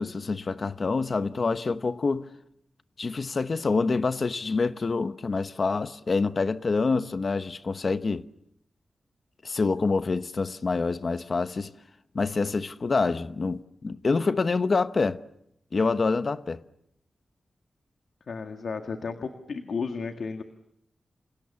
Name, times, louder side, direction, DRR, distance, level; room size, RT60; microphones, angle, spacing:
voice 1, 0.0-2.3 3.0-8.3 9.4-11.7 12.1-15.2 15.7-16.6, left 4 dB, 45° left, 1.0 m, -26 dB
voice 2, 18.3-20.4, left 5 dB, 70° left, 1.8 m, -33 dB
28.5 x 28.5 x 7.1 m
wide cardioid pair, 110°, 0 cm